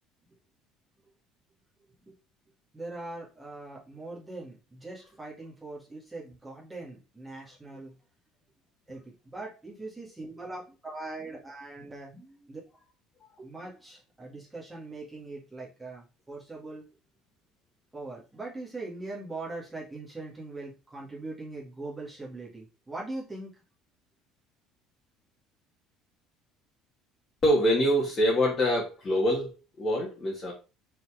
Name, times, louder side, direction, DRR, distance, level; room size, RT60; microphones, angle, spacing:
voice 1, 2.7-7.9 8.9-12.6 13.4-16.8 17.9-23.5, right 2 dB, 10° right, -5 dB, 1.9 m, -41 dB
voice 2, 27.4-30.5, equal, 25° left, -3 dB, 1.9 m, -25 dB
5.5 x 4.4 x 4.8 m, 0.30 s
cardioid pair, 160°, 0 cm